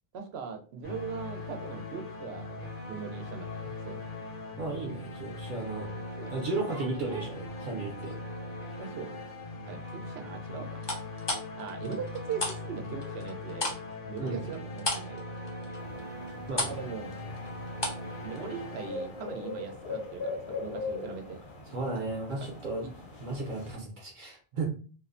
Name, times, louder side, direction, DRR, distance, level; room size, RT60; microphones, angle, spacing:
voice 1, 0.1-4.0 5.5-5.6 6.2-6.3 8.8-9.1 9.7-10.8 11.6-13.8 14.1-15.2 16.6-17.1 18.2-21.4 22.8-22.9, right 6 dB, 90° right, 4 dB, 0.8 m, -40 dB
sound 1, 0.8-19.7, left 2 dB, 60° left, 0.8 m, -40 dB
voice 2, 4.6-5.9 6.3-8.2 14.2-14.4 16.5-16.8 21.7-22.8 23.2-24.7, right 3 dB, 55° right, -1 dB, 0.7 m, -34 dB
sound 2, 6.4-8.2 8.6-9.1 10.8-12.6 12.8-18.1 18.4-18.5, left 2 dB, 40° left, 0.4 m, -35 dB
sound 3, 15.8-23.7, left 3 dB, 80° left, 1.1 m, -41 dB
2.5 x 2.0 x 2.4 m, 0.38 s
omnidirectional pair, 1.0 m